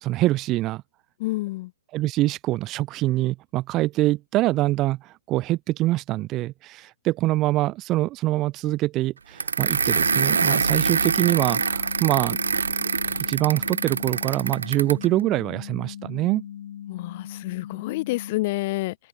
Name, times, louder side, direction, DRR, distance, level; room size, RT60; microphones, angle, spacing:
voice 1, 0.0-0.8 1.9-12.4 13.3-16.4, right 17 dB, 25° right, 1.4 m, -24 dB
voice 2, 1.2-1.7 16.9-19.0, left 20 dB, 40° left, 2.9 m, -28 dB
sound 1, 9.4-15.1, right 5 dB, 90° right, 0.7 m, -25 dB
sound 2, 10.0-18.4, left 10 dB, 60° left, 2.8 m, -39 dB
hypercardioid pair, 145°, 0 cm